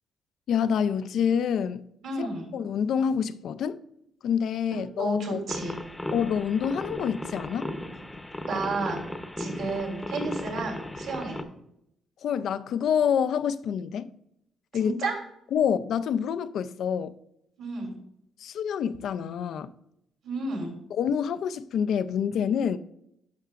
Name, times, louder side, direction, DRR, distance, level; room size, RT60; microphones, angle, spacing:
voice 1, 0.5-1.9 2.2-3.8 4.2-5.4 6.1-7.7 12.2-14.1 14.7-15.1 15.5-17.1 18.4-19.7 21.0-22.8, left 7 dB, 70° left, 0.4 m, -27 dB
voice 2, 2.0-2.5 5.0-5.8 8.4-9.0 9.4-11.4 14.8-15.2 17.6-18.0 20.2-20.8, right 3 dB, 80° right, 3.0 m, -31 dB
sound 1, 5.5-11.4, left 1 dB, 10° left, 0.7 m, -36 dB
11.5 x 5.6 x 2.4 m
cardioid pair, 90°, 0 cm